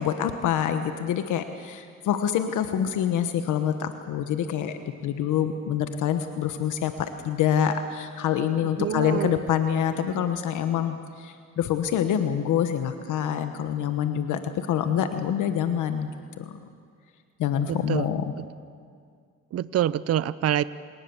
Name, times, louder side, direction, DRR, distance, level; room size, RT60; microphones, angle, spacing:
voice 1, 0.0-16.1 16.4-16.6 17.4-18.2, left 9 dB, 80° left, 8 dB, 1.2 m, -26 dB
voice 2, 8.8-9.4 17.7-18.1 18.4-18.5 19.5-20.6, right 11 dB, 55° right, 16 dB, 0.6 m, -26 dB
27.5 x 18.5 x 7.1 m, 2.1 s
cardioid pair, 90°, 30 cm